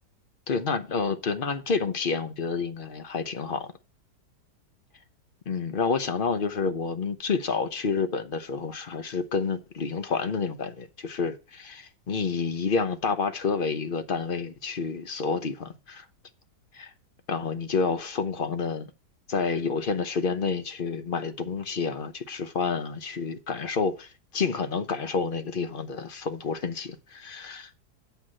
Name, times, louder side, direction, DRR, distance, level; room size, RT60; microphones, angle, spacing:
voice 1, 0.5-3.7 5.5-16.0 16.7-16.9 17.3-18.9 19.3-27.7, left 5 dB, 40° left, 0.8 m, -29 dB
8.2 x 5.6 x 7.5 m
omnidirectional pair, 1.8 m